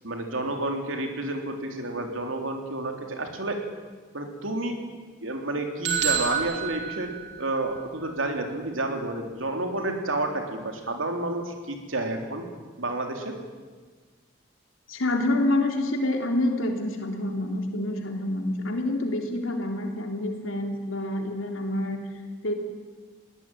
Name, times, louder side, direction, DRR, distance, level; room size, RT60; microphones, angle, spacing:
voice 1, 0.0-3.6 4.1-4.8 5.2-7.1 7.4-12.4 12.8-13.3, right 2 dB, 80° right, 4 dB, 3.6 m, -30 dB
sound 1, 5.8-7.8, right 8 dB, 55° right, 3.0 m, -29 dB
voice 2, 14.9-22.0 22.4-22.5, left 1 dB, 85° left, 3 dB, 3.5 m, -27 dB
21.5 x 17.5 x 9.3 m, 1.4 s
head